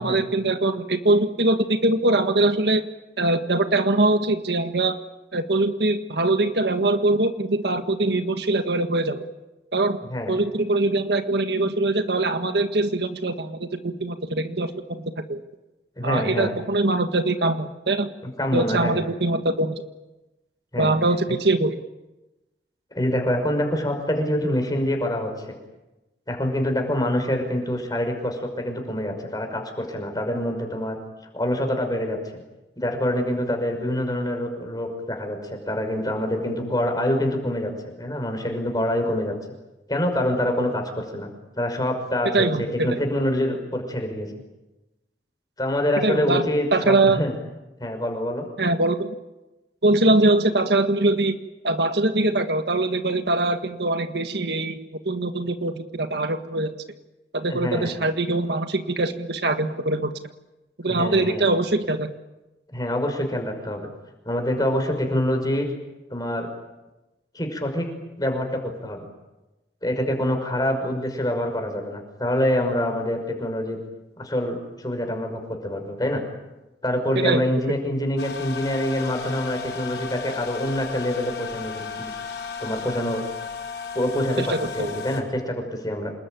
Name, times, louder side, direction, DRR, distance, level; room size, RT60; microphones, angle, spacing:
voice 1, 0.0-2.8 3.2-5.0 5.3-9.2 9.7-10.0 10.3-15.4 16.0-18.1 18.5-19.8 20.8-21.8 42.3-43.0 46.0-46.4 46.7-47.2 48.6-49.2 49.8-51.4 51.6-54.8 55.1-56.7 57.3-60.1 60.8-62.1 77.2-77.4 84.4-84.9, right 2 dB, 65° right, 7 dB, 1.7 m, -22 dB
voice 2, 10.0-10.3 16.0-16.5 18.2-19.1 20.7-20.9 22.9-25.6 26.3-31.0 31.3-32.2 32.8-39.3 39.9-41.3 41.6-44.3 45.6-47.3 47.8-48.5 57.5-57.9 60.9-61.4 62.7-63.9 64.3-65.7 66.1-66.5 67.3-67.9 68.2-68.5 68.8-69.1 69.8-73.8 74.2-76.2 76.8-82.1 82.6-83.2 83.9-86.1, left 1 dB, 20° left, 4 dB, 5.8 m, -26 dB
sound 1, 78.2-85.2, left 6 dB, 80° left, 5.7 m, -34 dB
27.5 x 21.0 x 9.3 m, 1.0 s
head